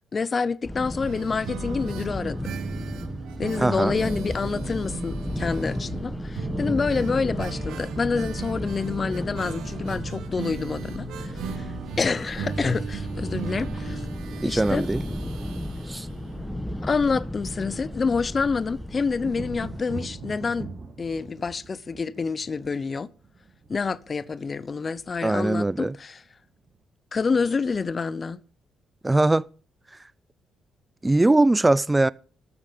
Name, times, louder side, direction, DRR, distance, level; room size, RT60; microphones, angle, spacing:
voice 1, 0.1-2.4 3.4-11.6 12.0-14.0 14.4-14.9 16.8-20.7 21.0-23.1 23.7-26.2 27.1-28.4, left 4 dB, 35° left, 0.7 m, -27 dB
sound 1, 0.6-19.8, left 1 dB, 5° left, 1.3 m, -34 dB
sound 2, 1.0-16.7 16.9-17.0 17.3-17.4, right 8 dB, 85° right, 1.2 m, -37 dB
voice 2, 3.6-4.0 14.4-15.0 15.9-16.1 25.2-25.9 29.0-29.4 31.0-32.1, right 2 dB, 15° right, 0.4 m, -21 dB
sound 3, 11.0-12.6 13.9-14.0 14.2-14.4 14.7-26.8, right 4 dB, 40° right, 3.5 m, -45 dB
13.0 x 6.9 x 6.8 m
cardioid pair, 90°, 0 cm